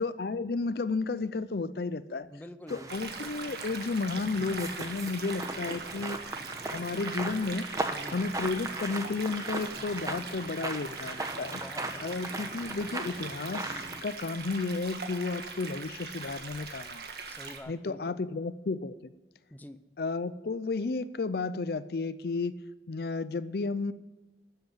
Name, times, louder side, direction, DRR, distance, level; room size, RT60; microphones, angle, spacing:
voice 1, 0.0-2.3 2.7-6.2 6.7-7.7 8.1-11.6 12.0-17.0 17.7-19.1 20.0-22.6 22.9-23.9, left 3 dB, 60° left, 15 dB, 0.5 m, -32 dB
voice 2, 2.2-3.1 7.9-8.2 11.5-12.1 17.3-18.2 19.5-19.8, left 1 dB, 10° left, 10 dB, 0.6 m, -47 dB
sound 1, 2.7-14.0, right 2 dB, 20° right, 1.0 m, -38 dB
sound 2, 2.9-17.6, right 4 dB, 60° right, 1.7 m, -41 dB
12.5 x 8.0 x 8.9 m, 1.2 s
head